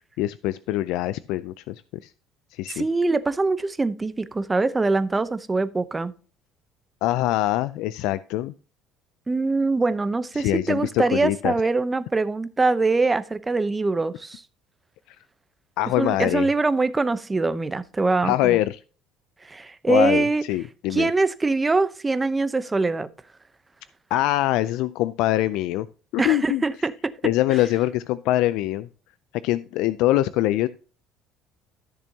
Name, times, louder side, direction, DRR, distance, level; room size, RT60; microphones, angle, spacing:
voice 1, 0.2-2.1 2.5-2.8 7.0-8.5 10.3-11.5 15.1-15.2 15.8-16.5 18.2-18.8 19.9-21.1 24.1-25.9 26.1-26.6 27.2-28.9 29.4-30.7, left 15 dB, 75° left, 0.4 m, -23 dB
voice 2, 2.7-6.1 9.3-14.4 16.0-18.6 19.5-20.4 20.9-23.1 26.2-27.1, right 3 dB, 15° right, 0.7 m, -23 dB
13.5 x 6.9 x 2.8 m
cardioid pair, 135°, 0 cm